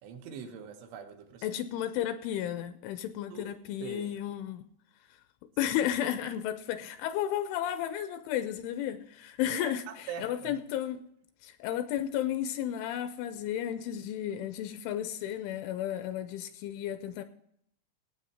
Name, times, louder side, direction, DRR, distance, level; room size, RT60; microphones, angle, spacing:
voice 1, 0.0-1.6 3.3-4.1 9.5-10.6, right 7 dB, 75° right, 5 dB, 3.3 m, -43 dB
voice 2, 1.4-4.7 5.6-11.0 11.4-17.2, left 11 dB, 80° left, 11 dB, 2.9 m, -33 dB
17.5 x 8.3 x 4.3 m, 0.71 s
omnidirectional pair, 5.8 m